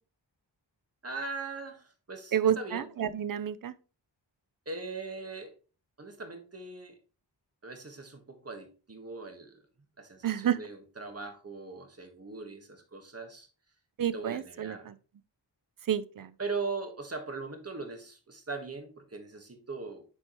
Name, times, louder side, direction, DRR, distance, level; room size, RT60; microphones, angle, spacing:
voice 1, 1.0-2.9 4.7-5.5 6.0-7.0 7.6-9.6 10.0-13.5 14.1-14.9 16.4-20.0, right 3 dB, 35° right, 1.6 m, -40 dB
voice 2, 2.3-3.7 10.2-10.6 14.0-14.9 15.9-16.3, right 9 dB, 50° right, 0.6 m, -29 dB
8.6 x 4.8 x 3.1 m
wide cardioid pair, 100°, 45 cm